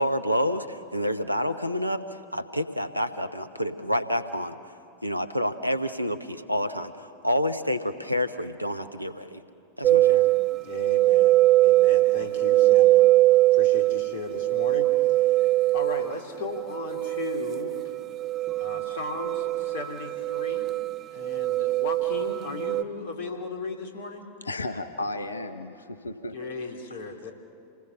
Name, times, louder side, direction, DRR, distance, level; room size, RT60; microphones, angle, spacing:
voice 1, 0.0-2.0 2.3-4.5 5.0-9.4 9.8-10.2, equal, 90° right, 10 dB, 1.0 m, -28 dB
voice 2, 9.8-10.3 10.6-13.1 13.5-17.9 18.5-20.7 21.1-24.3 26.3-27.3, left 3 dB, 55° left, 3 dB, 2.9 m, -37 dB
sound 1, 9.8-22.8, right 16 dB, 30° right, 0.5 m, -22 dB
voice 3, 24.4-26.4, left 2 dB, 75° left, 9 dB, 1.1 m, -34 dB
27.5 x 19.0 x 7.1 m, 2.7 s
figure-of-eight pair, 90°, 0 cm